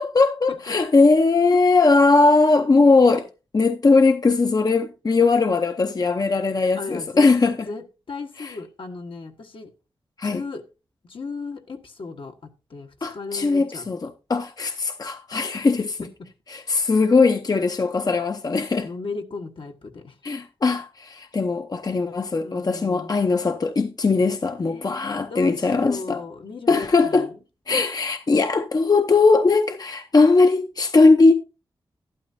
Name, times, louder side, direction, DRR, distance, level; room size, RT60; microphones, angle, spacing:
voice 1, 0.0-3.3 3.5-7.6 10.2-10.4 13.0-16.0 16.5-18.9 20.2-26.2 26.7-27.3 27.7-31.3, left 3 dB, 45° left, 0.8 m, -19 dB
voice 2, 6.8-7.3 7.7-9.7 10.2-10.6 11.0-12.3 12.7-14.1 15.3-15.4 18.5-20.2 22.4-23.2 24.7-27.4, left 4 dB, 70° left, 1.6 m, -36 dB
12.0 x 12.0 x 2.8 m
cardioid pair, 65°, 9 cm